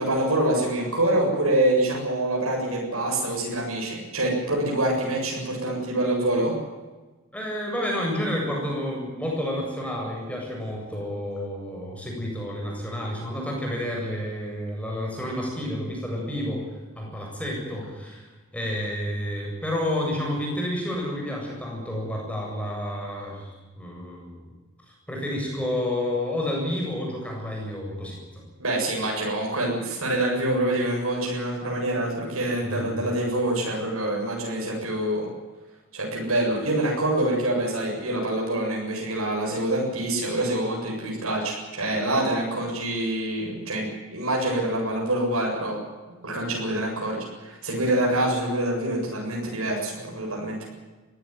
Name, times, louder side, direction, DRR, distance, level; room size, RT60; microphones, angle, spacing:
voice 1, 0.0-6.5 28.6-35.3 35.9-45.8 46.2-50.7, right 1 dB, 75° right, -2 dB, 7.9 m, -26 dB
voice 2, 7.3-16.6 17.0-18.3 18.5-23.5 23.8-24.5 24.9-28.4 32.6-32.9, left 1 dB, 5° left, -1 dB, 7.7 m, -30 dB
23.0 x 16.5 x 9.6 m, 1.3 s
head